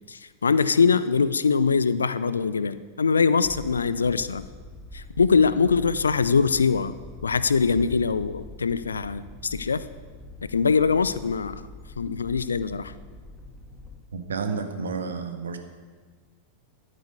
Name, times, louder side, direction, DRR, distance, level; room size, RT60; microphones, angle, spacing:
voice 1, 0.1-4.5 4.9-6.9 7.2-9.8 10.4-11.6 12.0-12.9, left 5 dB, 75° left, 15 dB, 0.5 m, -23 dB
sound 1, 3.4-14.0, left 1 dB, 5° right, 2.0 m, -43 dB
voice 2, 14.1-15.6, right 5 dB, 70° right, 6 dB, 1.5 m, -30 dB
13.0 x 9.2 x 6.8 m, 1.5 s
figure-of-eight pair, 90°, 0 cm